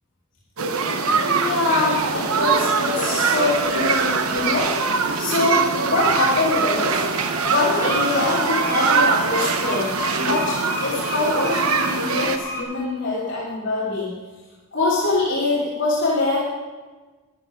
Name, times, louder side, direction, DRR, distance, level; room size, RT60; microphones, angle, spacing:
sound 1, 0.6-12.4, right 5 dB, 80° right, 0.9 m, -23 dB
voice 1, 1.2-4.7 5.2-7.0 7.4-14.1 14.7-16.4, left 2 dB, 60° left, -8 dB, 3.1 m, -23 dB
sound 2, 1.5-12.6, left 1 dB, 15° left, 2.4 m, -35 dB
sound 3, 2.5-4.8 6.9-8.9, right 2 dB, 20° right, 2.6 m, -31 dB
13.0 x 11.5 x 5.1 m, 1.3 s
head